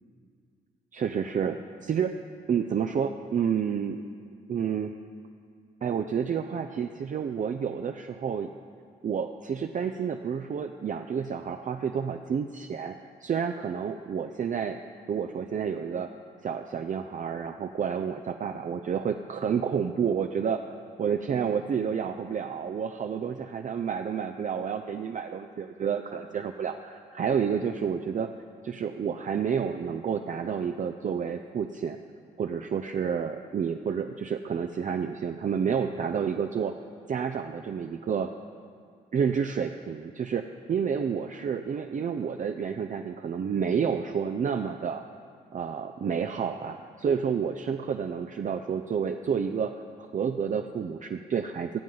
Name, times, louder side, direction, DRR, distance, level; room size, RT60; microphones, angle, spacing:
voice 1, 0.9-2.2 2.5-4.0 4.5-4.9 5.8-8.5 9.0-12.9 13.2-14.8 15.1-16.1 16.4-20.6 21.0-28.3 28.6-32.0 32.4-36.8 37.1-38.3 39.1-45.0 45.5-49.7 50.1-51.8, right 7 dB, 45° right, 6 dB, 0.5 m, -30 dB
16.5 x 7.4 x 3.9 m, 2.2 s
supercardioid pair, 55°, 19 cm